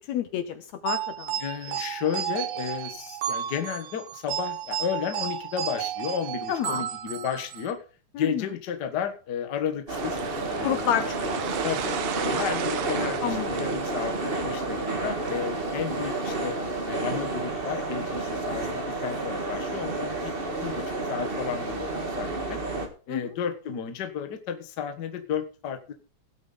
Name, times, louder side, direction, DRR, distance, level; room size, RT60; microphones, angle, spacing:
voice 1, 0.0-1.4 1.7-1.8 6.5-6.9 8.2-8.5 10.6-11.4 13.2-13.5 23.1-23.3, left 10 dB, 70° left, 10 dB, 1.9 m, -29 dB
sound 1, 0.9-7.7, right 11 dB, 90° right, 2.6 m, -32 dB
voice 2, 1.4-7.8 8.2-10.9 11.6-11.9 12.2-20.3 20.6-22.6 23.1-25.9, left 7 dB, 50° left, 7 dB, 1.4 m, -33 dB
sound 2, 9.9-22.9, right 2 dB, 25° right, 1.2 m, -30 dB
sound 3, 9.9-15.7, right 10 dB, 65° right, 1.7 m, -36 dB
17.5 x 8.2 x 3.9 m, 0.38 s
omnidirectional pair, 3.6 m